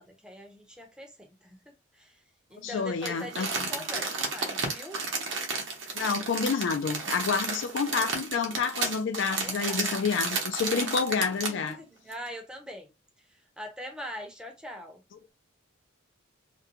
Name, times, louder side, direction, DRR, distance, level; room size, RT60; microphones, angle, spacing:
voice 1, 0.0-1.6 1.9-2.2 2.5-5.0 9.4-9.8 11.5-12.9 13.3-15.0, equal, 5° right, 0.6 m, -42 dB
voice 2, 2.6-3.5 5.9-11.8, left 5 dB, 65° left, 0.4 m, -29 dB
Crumpling crinkling, 3.0-11.7 12.1-12.2, right 4 dB, 65° right, 0.8 m, -32 dB
2.5 x 2.2 x 2.7 m
head